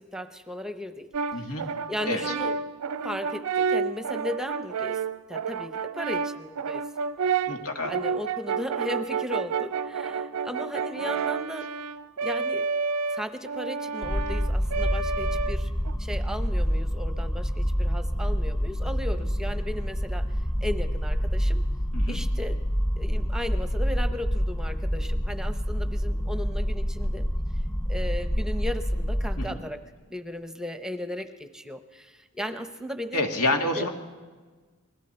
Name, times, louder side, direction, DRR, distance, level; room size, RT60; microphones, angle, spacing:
voice 1, 0.0-2.6 3.0-5.0 5.3-6.8 7.2-7.5 7.9-11.7 12.2-12.7 13.1-15.7 16.0-20.2 20.6-21.6 22.1-22.6 23.0-27.2 27.9-29.8 30.1-33.2 33.8-33.9, left 1 dB, 5° right, 9 dB, 0.8 m, -36 dB
Brass instrument, 1.1-15.9, right 5 dB, 90° right, 0.5 m, -30 dB
voice 2, 1.3-1.6 2.0-2.4 7.5-7.9 21.9-22.2 29.4-29.6 33.1-33.9, left 2 dB, 90° left, 3 dB, 2.3 m, -28 dB
sound 1, 14.0-29.5, equal, 20° left, 1.6 m, -27 dB
29.5 x 21.0 x 4.4 m, 1.4 s
head